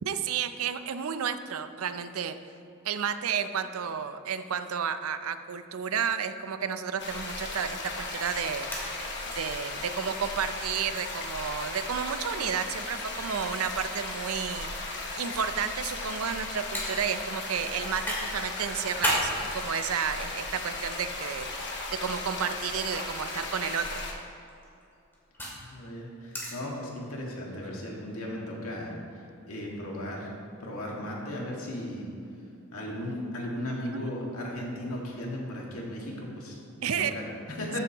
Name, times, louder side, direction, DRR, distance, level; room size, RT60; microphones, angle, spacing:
voice 1, 0.0-2.4 2.8-9.0 9.3-14.7 15.2-21.5 21.9-24.0 33.8-34.1 36.8-37.2, right 7 dB, 75° right, 11 dB, 0.5 m, -32 dB
sound 1, 7.0-24.1, left 2 dB, 55° left, 1.2 m, -36 dB
sound 2, 8.7-9.4 9.7-9.8 10.1-10.2 11.3-11.5 12.6-12.7 13.5-14.9 15.3-15.5 15.8-15.9 16.7-16.9 17.4-18.2 18.6-19.3 20.1-20.8 21.9-22.1 22.8-23.0 24.3-25.6 26.3-26.5, equal, 10° left, 2.2 m, -33 dB
voice 2, 25.4-28.9 29.5-30.3 30.6-32.1 32.7-37.8, left 1 dB, 80° left, -2 dB, 1.9 m, -36 dB
14.0 x 7.9 x 3.0 m, 2.6 s
head